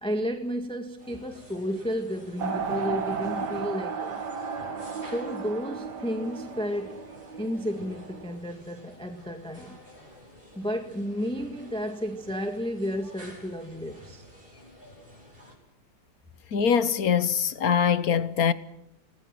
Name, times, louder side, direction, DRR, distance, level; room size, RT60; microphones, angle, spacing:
voice 1, 0.0-4.1 5.0-7.0 7.4-9.8 10.5-14.2, equal, 5° left, 1.7 m, -32 dB
sound 1, 1.0-15.5, equal, 30° right, 8.0 m, -50 dB
sound 2, 2.4-8.3, right 5 dB, 65° right, 2.2 m, -34 dB
voice 2, 16.5-18.5, left 7 dB, 55° left, 1.4 m, -23 dB
28.5 x 19.0 x 6.0 m
omnidirectional pair, 1.9 m